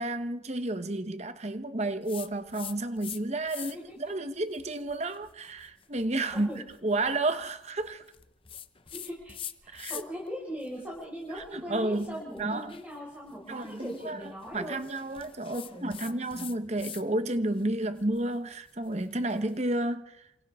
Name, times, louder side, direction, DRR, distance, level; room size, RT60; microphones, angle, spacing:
voice 1, 0.0-6.5 6.8-8.0 9.7-10.0 11.3-12.8 13.5-20.2, right 2 dB, 35° right, 1.1 m, -31 dB
sound 1, 2.1-3.2 3.5-4.0 4.5-10.3 10.6-17.1 17.4-19.6, left 9 dB, 30° left, 0.8 m, -46 dB
voice 2, 8.9-9.4 9.6-14.8 15.5-16.5, equal, 10° right, 5.1 m, -40 dB
28.5 x 26.5 x 3.7 m
head